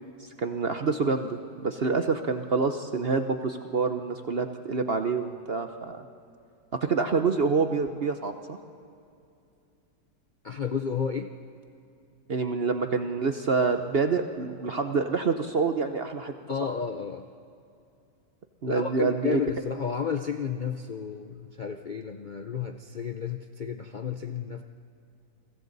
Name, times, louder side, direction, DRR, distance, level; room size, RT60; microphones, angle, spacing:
voice 1, 0.4-6.0 6.7-8.6 12.3-16.3 16.6-16.7 18.6-19.4, right 4 dB, 50° right, 7 dB, 0.8 m, -27 dB
voice 2, 10.4-11.3 16.5-17.3 18.7-24.6, left 6 dB, 75° left, 6 dB, 0.4 m, -32 dB
29.5 x 23.5 x 4.1 m, 2.6 s
omnidirectional pair, 1.8 m